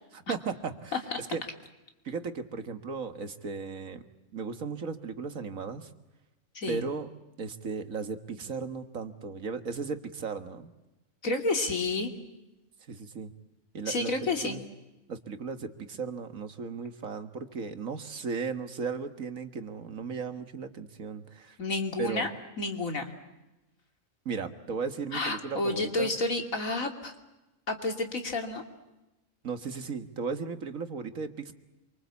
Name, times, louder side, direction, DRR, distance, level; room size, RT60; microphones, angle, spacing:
voice 1, 0.1-1.4 2.1-4.0 4.3-5.9 6.7-7.1 7.4-10.7 12.9-13.3 13.7-14.6 15.1-21.6 22.0-22.3 24.3-26.1 29.4-31.5, right 5 dB, 85° right, 9 dB, 2.0 m, -36 dB
voice 2, 11.2-12.1 13.9-14.6 21.6-22.3 22.6-23.1 25.1-27.1 27.7-28.6, left 2 dB, 90° left, 4 dB, 3.2 m, -30 dB
27.5 x 24.5 x 8.3 m, 1.0 s
omnidirectional pair, 1.4 m